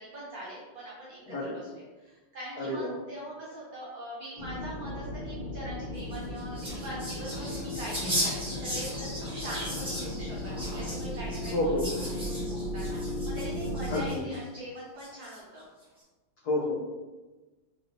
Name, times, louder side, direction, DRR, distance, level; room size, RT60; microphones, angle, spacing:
voice 1, 0.0-11.7 12.3-15.6, right 1 dB, 65° right, -6 dB, 0.9 m, -42 dB
voice 2, 2.6-3.0 11.5-11.9 13.9-14.2 16.4-16.9, left 1 dB, 75° left, -5 dB, 0.9 m, -29 dB
sound 1, 4.4-14.1, left 1 dB, 55° left, 1.9 m, -36 dB
sound 2, 6.0-14.4 15.0-15.6, equal, 5° right, 0.5 m, -37 dB
4.0 x 3.3 x 2.6 m, 1.2 s
omnidirectional pair, 2.4 m